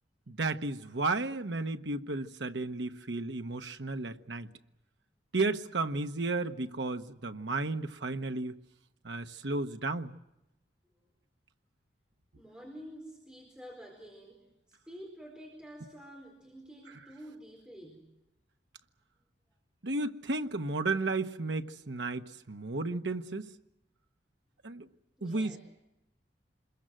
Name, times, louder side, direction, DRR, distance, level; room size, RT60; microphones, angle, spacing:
voice 1, 0.3-4.5 5.3-8.6 9.0-10.2 19.8-23.5 24.6-24.9 25.2-25.6, right 3 dB, 90° right, 1.2 m, -33 dB
voice 2, 12.4-18.1 25.2-25.6, equal, 5° right, 4.4 m, -49 dB
27.0 x 22.0 x 7.7 m
head